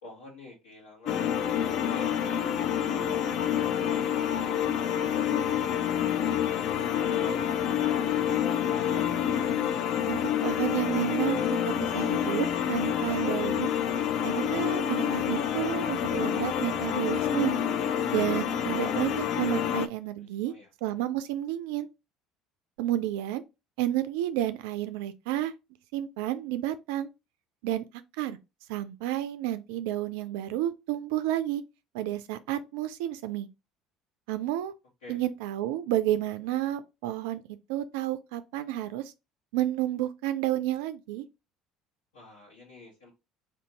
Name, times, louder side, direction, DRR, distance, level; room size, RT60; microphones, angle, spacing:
voice 1, 0.0-3.2 6.7-8.3 20.2-20.7 35.0-35.2 42.1-43.1, left 2 dB, 80° left, 2.1 m, -48 dB
sound 1, 1.1-19.9, left 9 dB, 60° left, 0.4 m, -28 dB
voice 2, 10.1-13.7 14.2-17.5 18.1-20.5 20.8-21.9 22.8-23.4 23.8-25.5 25.9-27.1 27.6-27.8 28.2-28.4 28.7-31.6 31.9-33.5 34.3-34.7 35.1-37.4 37.7-39.1 39.5-41.3, right 13 dB, 70° right, 0.3 m, -31 dB
3.4 x 2.8 x 3.8 m
hypercardioid pair, 65°, 0 cm